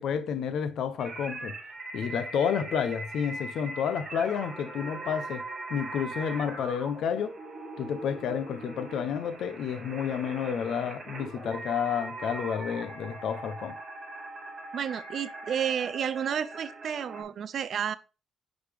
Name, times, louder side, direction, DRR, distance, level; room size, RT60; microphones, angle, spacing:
voice 1, 0.0-1.5 1.9-5.4 5.7-7.4 7.8-13.7, left 7 dB, 65° left, 0.8 m, -30 dB
sound 1, 1.0-17.2, right 2 dB, 25° right, 3.7 m, -41 dB
voice 2, 14.7-17.9, right 8 dB, 45° right, 0.4 m, -31 dB
9.8 x 4.1 x 3.4 m
cardioid pair, 180°, 0 cm